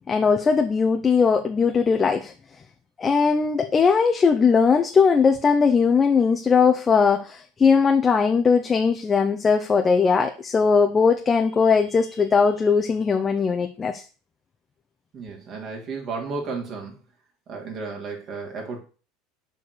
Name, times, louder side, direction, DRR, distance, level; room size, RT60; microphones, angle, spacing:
voice 1, 0.1-2.3 3.0-14.0, left 5 dB, 25° left, 5 dB, 0.9 m, -19 dB
voice 2, 15.1-17.0 17.5-18.8, right 4 dB, 45° right, 1 dB, 3.4 m, -33 dB
7.1 x 4.7 x 6.6 m, 0.37 s
hypercardioid pair, 80°, 0 cm